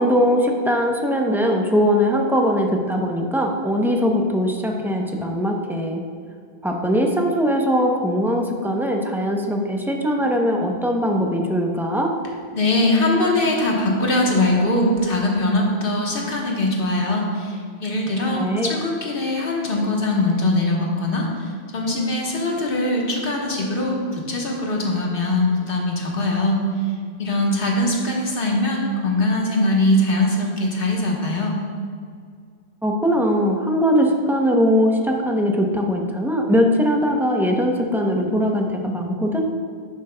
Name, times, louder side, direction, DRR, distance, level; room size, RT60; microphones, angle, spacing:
voice 1, 0.0-6.0 6.6-12.1 18.4-18.7 32.8-39.4, equal, 5° right, 1 dB, 0.5 m, -20 dB
voice 2, 12.5-17.6 17.8-21.5 21.7-26.6 27.2-31.6, left 1 dB, 60° left, -1 dB, 1.3 m, -21 dB
10.5 x 7.2 x 2.2 m, 2.1 s
omnidirectional pair, 1.1 m